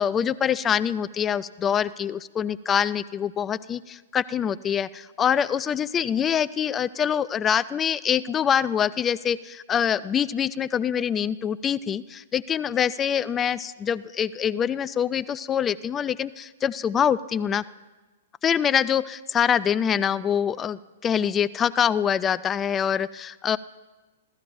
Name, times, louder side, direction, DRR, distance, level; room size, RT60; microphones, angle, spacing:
voice 1, 0.0-17.6 18.4-23.6, left 8 dB, 20° left, 17 dB, 0.4 m, -25 dB
26.0 x 15.0 x 2.6 m, 1.2 s
hypercardioid pair, 135°, 0 cm